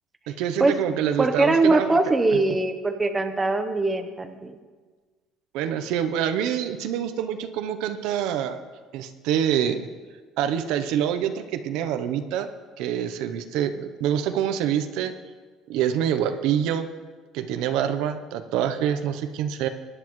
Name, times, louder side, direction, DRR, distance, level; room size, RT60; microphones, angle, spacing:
voice 1, 0.3-2.0 5.5-8.6 8.9-9.9 10.4-12.5 12.8-15.1 15.7-16.9 17.3-19.7, right 9 dB, 80° right, 9 dB, 0.7 m, -26 dB
voice 2, 1.2-4.6, right 3 dB, 15° right, 7 dB, 0.8 m, -22 dB
20.5 x 10.0 x 3.1 m, 1.4 s
cardioid pair, 150°, 0 cm